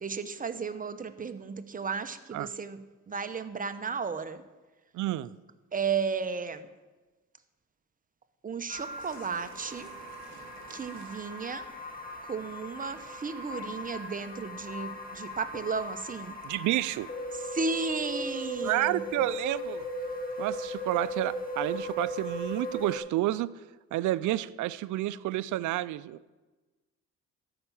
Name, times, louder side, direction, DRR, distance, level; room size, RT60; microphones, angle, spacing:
voice 1, 0.0-2.8 3.1-4.4 5.7-6.7 8.4-9.9 10.7-11.7 12.2-16.4 17.4-19.2, right 5 dB, 30° right, 10 dB, 0.8 m, -34 dB
voice 2, 4.9-5.3 16.4-17.1 18.6-19.9 20.4-23.5 23.9-26.3, right 15 dB, 75° right, 16 dB, 0.5 m, -30 dB
sound 1, 8.7-23.0, equal, 30° left, 2.1 m, -38 dB
sound 2, 9.0-12.4 12.7-13.0 13.4-15.3 15.8-16.8 17.0-18.6 18.8-19.1 19.3-22.4, left 4 dB, 65° left, 1.8 m, -57 dB
13.0 x 5.9 x 7.0 m, 1.2 s
cardioid pair, 90°, 30 cm